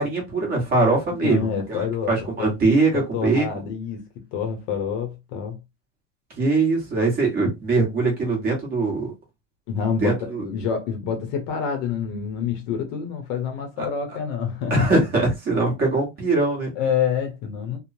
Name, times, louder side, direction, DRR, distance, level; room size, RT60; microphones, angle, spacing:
voice 1, 0.0-3.5 6.4-9.1 10.0-10.4 14.7-16.7, right 3 dB, 25° right, 1.0 m, -22 dB
voice 2, 1.2-2.1 2.4-2.5 2.9-4.0 4.3-5.6 9.7-14.9 16.8-17.8, left 7 dB, 40° left, 0.7 m, -27 dB
3.1 x 2.0 x 2.5 m
supercardioid pair, 165°, 39 cm